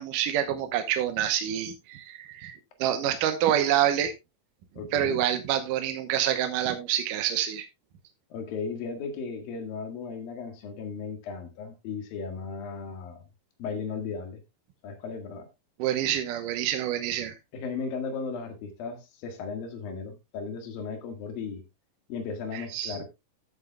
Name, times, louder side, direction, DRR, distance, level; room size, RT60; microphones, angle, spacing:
voice 1, 0.0-4.1 4.9-7.7 15.8-17.3 22.5-23.0, right 11 dB, 75° right, 2.4 m, -27 dB
voice 2, 4.8-5.2 8.3-13.2 13.6-14.4 14.8-15.5 17.5-21.6 22.1-23.1, left 5 dB, 80° left, 3.6 m, -36 dB
14.5 x 8.3 x 2.3 m
omnidirectional pair, 4.1 m